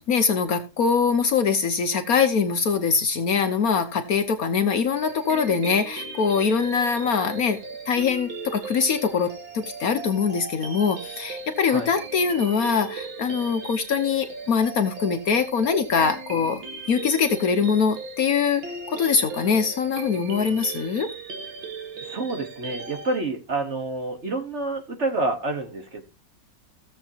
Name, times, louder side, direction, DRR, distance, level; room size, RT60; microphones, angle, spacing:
voice 1, 0.0-7.6 7.9-9.3 9.5-16.6 16.9-21.1, left 6 dB, 60° left, 1.2 m, -23 dB
sound 1, 4.9-23.2, right 3 dB, 80° right, 2.4 m, -38 dB
voice 2, 22.0-26.0, right 2 dB, 40° right, 1.5 m, -28 dB
16.0 x 7.2 x 2.8 m
omnidirectional pair, 2.0 m